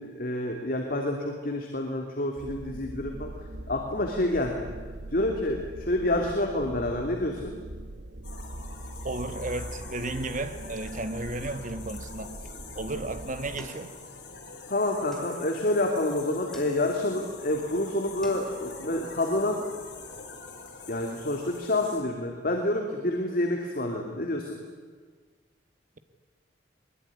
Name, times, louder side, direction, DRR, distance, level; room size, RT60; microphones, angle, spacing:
voice 1, 0.0-4.7 5.1-7.5 14.7-19.6 20.9-24.6, left 1 dB, 55° left, 2.8 m, -28 dB
sound 1, 2.4-13.7, right 1 dB, 65° right, 1.1 m, -41 dB
sound 2, 8.2-22.0, left 4 dB, 80° left, 6.0 m, -45 dB
voice 2, 9.0-12.4 12.7-13.9, right 2 dB, 45° right, 1.6 m, -33 dB
sound 3, 13.6-14.5 15.1-15.8 16.5-17.2 17.7-17.8 18.0-18.8, equal, 5° left, 5.5 m, -49 dB
22.5 x 22.5 x 9.8 m
head